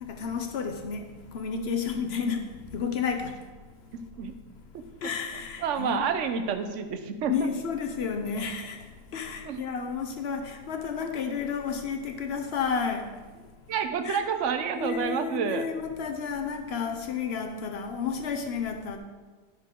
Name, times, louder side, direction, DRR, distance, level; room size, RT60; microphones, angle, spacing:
voice 1, 0.0-3.4 5.0-6.1 7.3-8.8 9.1-13.1 14.0-14.2 14.8-19.0, left 6 dB, 70° left, 0.6 m, -31 dB
voice 2, 3.9-4.3 5.6-7.5 9.4-9.6 13.7-15.7, right 6 dB, 60° right, 0.8 m, -29 dB
11.0 x 6.5 x 3.7 m
omnidirectional pair, 1.9 m